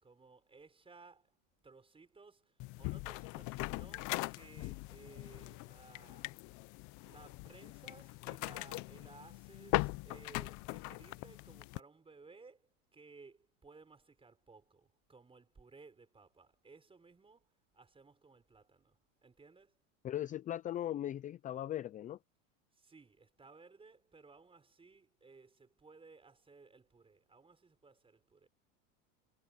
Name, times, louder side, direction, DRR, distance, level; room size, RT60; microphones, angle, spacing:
voice 1, 0.0-1.4 1.6-6.3 7.0-19.8 22.7-28.5, right 4 dB, 15° right, 4.8 m, -59 dB
sound 1, 2.6-11.8, left 23 dB, 50° left, 0.8 m, -41 dB
sound 2, 3.9-4.5 5.9-6.7 7.9-8.1 8.6-8.8, left 20 dB, 70° left, 1.4 m, -48 dB
voice 2, 20.0-22.2, left 12 dB, 20° left, 0.4 m, -38 dB
supercardioid pair, 120°, 39 cm